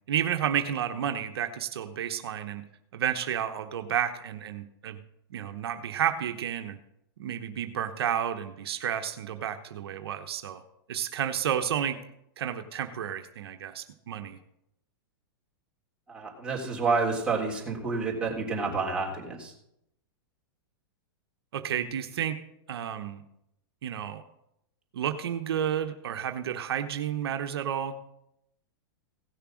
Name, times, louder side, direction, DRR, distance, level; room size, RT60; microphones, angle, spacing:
voice 1, 0.1-2.6 2.9-5.0 5.3-6.8 7.2-10.6 10.9-12.0 12.4-14.4 21.5-22.4 22.7-23.2 23.8-24.2 24.9-28.2, right 9 dB, 75° right, 7 dB, 1.1 m, -31 dB
voice 2, 16.1-19.5, right 4 dB, 5° right, -4 dB, 3.5 m, -29 dB
16.5 x 6.8 x 6.3 m, 0.80 s
hypercardioid pair, 125°, 13 cm